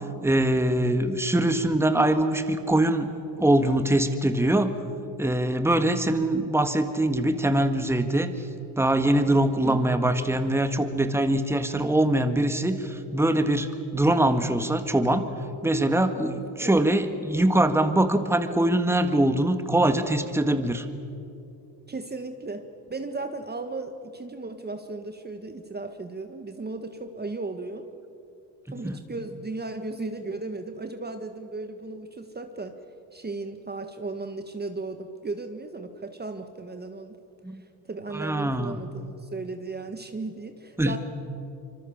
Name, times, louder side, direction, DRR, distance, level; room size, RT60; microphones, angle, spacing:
voice 1, 0.2-3.1 3.4-4.8 5.2-8.5 8.8-15.3 15.6-20.9 28.7-29.0 37.4-37.6 38.1-38.8 40.8-40.9, right 1 dB, 5° right, 8 dB, 1.8 m, -23 dB
voice 2, 16.5-16.9 21.9-27.9 28.7-32.7 33.1-37.2 37.9-41.0, right 3 dB, 20° right, 7 dB, 1.6 m, -35 dB
25.5 x 23.5 x 7.4 m, 2.6 s
supercardioid pair, 80°, 45 cm